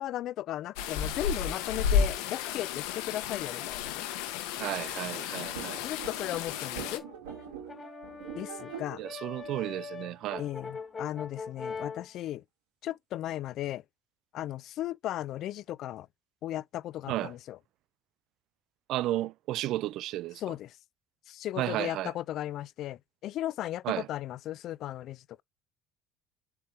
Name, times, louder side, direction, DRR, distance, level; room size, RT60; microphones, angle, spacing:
voice 1, 0.0-4.1 5.8-7.0 8.3-9.0 10.4-12.4 12.8-13.8 14.3-16.1 16.4-17.6 20.4-20.8 21.3-25.4, left 13 dB, 60° left, 0.4 m, -36 dB
sound 1, 0.8-7.0, left 7 dB, 80° left, 1.1 m, -32 dB
voice 2, 4.6-5.8 9.0-10.4 17.1-17.3 18.9-20.4 21.6-22.1 23.8-24.1, right 15 dB, 65° right, 0.3 m, -33 dB
sound 2, 5.5-10.6, right 9 dB, 85° right, 2.3 m, -45 dB
Brass instrument, 6.6-12.1, left 5 dB, 30° left, 1.4 m, -42 dB
7.1 x 4.5 x 3.3 m
hypercardioid pair, 70°, 0 cm